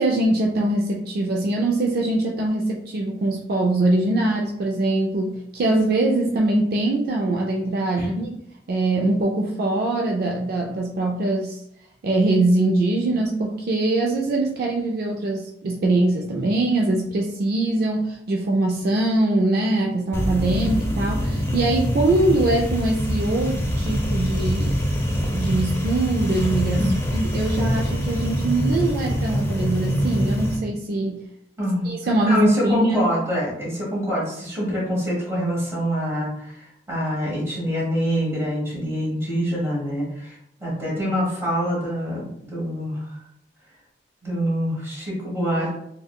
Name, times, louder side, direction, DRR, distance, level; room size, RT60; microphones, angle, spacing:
voice 1, 0.0-8.4 8.7-11.6 12.0-24.8 25.3-31.2 31.8-33.1, right 2 dB, 55° right, 0 dB, 0.3 m, -22 dB
sound 1, 20.1-30.6, equal, 15° left, 0.4 m, -24 dB
voice 2, 31.6-31.9 32.3-40.3 40.6-43.2 44.2-45.7, equal, 15° right, -6 dB, 1.2 m, -25 dB
3.6 x 2.1 x 2.2 m, 0.74 s
head